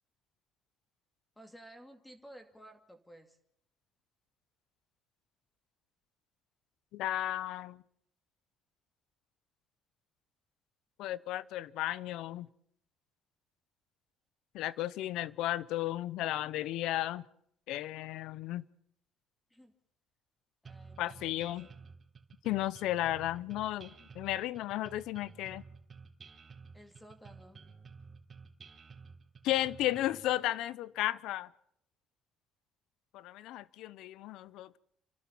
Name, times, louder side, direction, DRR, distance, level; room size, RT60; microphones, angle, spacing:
voice 1, 1.4-3.4 19.5-19.8 20.6-21.7 26.7-27.6, right 1 dB, 5° left, 2.5 m, -55 dB
voice 2, 6.9-7.8 11.0-12.5 14.5-17.3 17.7-18.7 21.0-21.7 22.4-25.6 29.4-31.5 33.1-34.8, left 14 dB, 80° left, 0.7 m, -34 dB
sound 1, 20.6-30.2, right 5 dB, 30° right, 3.6 m, -52 dB
29.5 x 12.0 x 7.2 m
cardioid pair, 105°, 0 cm